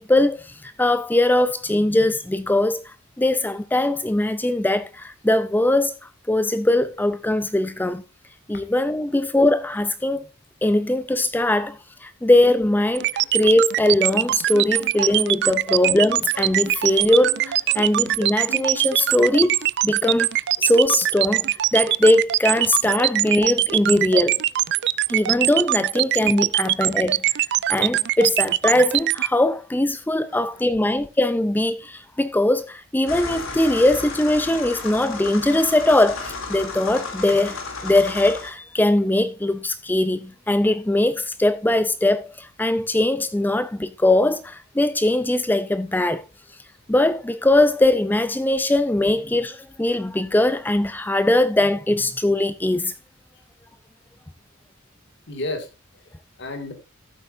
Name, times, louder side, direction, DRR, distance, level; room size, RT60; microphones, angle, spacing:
voice 1, 0.0-5.9 6.3-8.0 8.5-10.2 10.6-19.6 19.8-20.3 20.6-24.4 25.1-27.2 27.7-46.2 46.9-52.9, left 1 dB, 10° left, 0.4 m, -21 dB
sound 1, 13.0-29.3, right 14 dB, 55° right, 0.4 m, -21 dB
sound 2, 14.5-19.8, right 4 dB, 75° right, 1.3 m, -41 dB
voice 2, 30.2-30.6 46.7-46.8 53.3-53.4 55.3-56.7, left 2 dB, 60° left, 2.1 m, -35 dB
sound 3, 33.1-38.5, left 3 dB, 80° left, 2.8 m, -33 dB
14.0 x 7.9 x 2.6 m
head